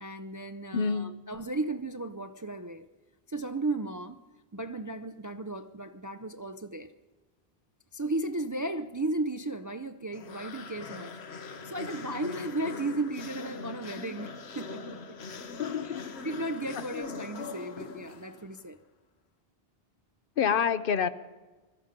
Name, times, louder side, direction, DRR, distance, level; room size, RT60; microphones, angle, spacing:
voice 1, 0.0-2.9 3.3-4.2 4.5-6.9 7.9-11.2 11.6-15.2 15.8-16.0 16.2-18.8, right 2 dB, 25° right, 0.4 m, -35 dB
voice 2, 0.7-1.2 15.6-16.1 16.8-16.9 20.4-21.1, left 7 dB, 60° left, 0.8 m, -28 dB
sound 1, 10.1-18.6, left 4 dB, 90° left, 1.3 m, -42 dB
21.5 x 13.0 x 5.2 m
omnidirectional pair, 1.1 m